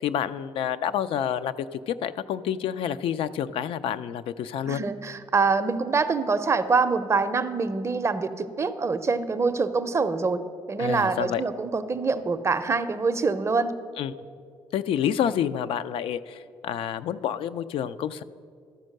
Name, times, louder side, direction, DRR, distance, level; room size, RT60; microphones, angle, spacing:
voice 1, 0.0-4.8 10.8-11.4 14.0-14.1 14.7-18.2, left 9 dB, 70° left, 14 dB, 0.4 m, -28 dB
voice 2, 4.7-10.4 10.7-13.7, right 4 dB, 30° right, 11 dB, 0.5 m, -25 dB
13.0 x 4.5 x 6.4 m, 2.3 s
cardioid pair, 90°, 10 cm